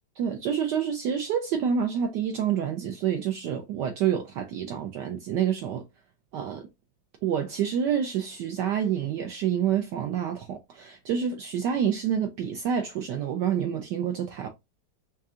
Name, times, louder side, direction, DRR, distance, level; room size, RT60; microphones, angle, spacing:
voice 1, 0.2-5.8 6.3-6.7 7.2-14.5, right 8 dB, 70° right, 1.1 m, -28 dB
5.4 x 2.6 x 2.4 m
omnidirectional pair, 2.2 m